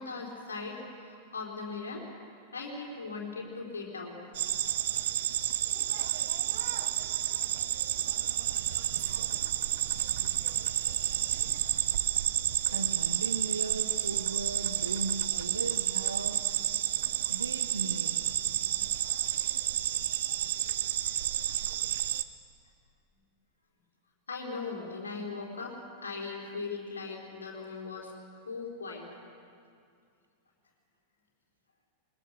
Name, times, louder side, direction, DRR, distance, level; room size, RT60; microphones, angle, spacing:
voice 1, 0.0-2.0 2.5-4.3 24.3-25.8 26.0-28.1 28.4-29.0, left 4 dB, 70° left, -1 dB, 3.8 m, -39 dB
sound 1, 4.3-22.2, right 12 dB, 55° right, 0.7 m, -30 dB
voice 2, 12.7-16.6 17.3-18.3, right 3 dB, 75° right, 9 dB, 1.2 m, -37 dB
21.0 x 20.0 x 6.6 m, 2.4 s
figure-of-eight pair, 90°, 0 cm